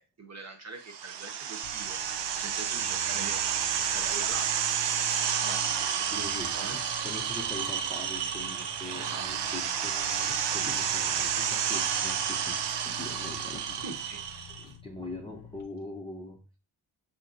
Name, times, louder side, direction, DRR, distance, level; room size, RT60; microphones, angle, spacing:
voice 1, 0.0-3.4 3.7-4.7 5.4-6.8 8.9-9.5 13.8-14.2, right 3 dB, 35° right, 1.1 m, -43 dB
sound 1, 0.9-14.6, right 8 dB, 65° right, 0.5 m, -30 dB
sound 2, 1.6-15.6, left 9 dB, 60° left, 0.6 m, -49 dB
voice 2, 6.1-13.8 14.6-16.4, left 2 dB, 10° left, 0.5 m, -42 dB
5.7 x 2.9 x 2.5 m
wide cardioid pair, 105°, 46 cm